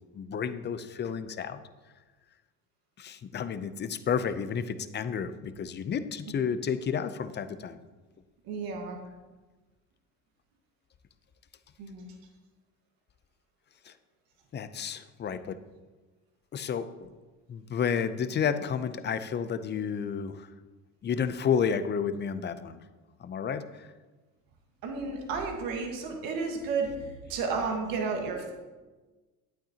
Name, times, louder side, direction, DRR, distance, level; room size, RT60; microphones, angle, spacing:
voice 1, 0.1-1.6 3.0-7.8 13.9-14.0 14.5-15.6 16.5-17.1 17.5-20.5 21.0-22.8 23.2-23.9, left 7 dB, 30° left, 12 dB, 0.6 m, -31 dB
voice 2, 8.4-9.0 11.8-12.1 24.8-28.5, right 4 dB, 80° right, 1 dB, 1.6 m, -32 dB
11.5 x 9.0 x 2.9 m, 1.3 s
cardioid pair, 105°, 34 cm